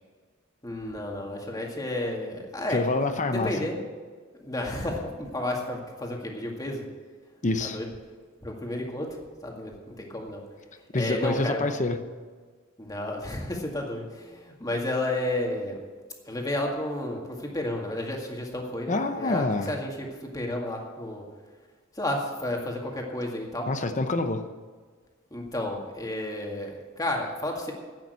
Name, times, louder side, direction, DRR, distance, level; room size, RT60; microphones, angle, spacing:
voice 1, 0.6-2.8 3.3-3.8 4.4-6.8 7.6-7.9 8.4-9.1 9.4-10.4 10.9-11.6 12.8-15.8 16.3-20.1 20.3-21.2 22.0-23.7 25.3-27.7, left 1 dB, 15° left, 0 dB, 2.0 m, -32 dB
voice 2, 2.7-3.5 7.4-7.8 10.9-12.0 18.9-19.7 23.7-24.4, left 2 dB, 35° left, 8 dB, 0.8 m, -26 dB
10.5 x 8.9 x 8.2 m, 1.5 s
head